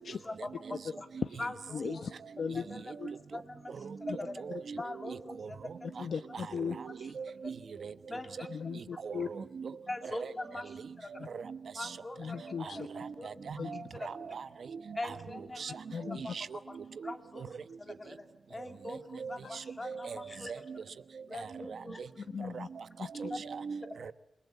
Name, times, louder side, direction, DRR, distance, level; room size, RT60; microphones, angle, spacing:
voice 1, 0.1-1.1 1.4-2.1 2.5-4.4 4.7-6.2 6.5-7.5 8.1-8.5 9.9-10.7 11.0-11.1 11.7-12.4 12.7-12.8 13.2-14.4 14.9-15.8 16.5-16.8 17.0-17.5 17.8-20.5 21.3-22.0 23.3-23.4, left 2 dB, 25° left, 5 dB, 2.8 m, -43 dB
voice 2, 1.7-2.1 2.4-2.7 3.0-3.1 6.0-6.8 8.5-9.3 11.2-11.3 12.2-12.9 13.6-13.9 15.9-16.2 22.2-22.7 23.0-23.1, left 6 dB, 75° left, 8 dB, 1.0 m, -37 dB
voice 3, 3.8-4.8 5.0-5.2 6.5-7.5 7.8-7.9 9.0-9.7 10.1-10.3 11.3-11.4 11.8-11.9 12.9-14.5 15.0-15.1 15.6-15.7 16.1-16.5 17.0-17.1 19.2-20.6 21.7-21.8 22.5-22.6 23.2-24.1, right 5 dB, 75° right, 13 dB, 1.1 m, -40 dB
28.5 x 23.0 x 8.3 m, 0.91 s
wide cardioid pair, 135°, 0 cm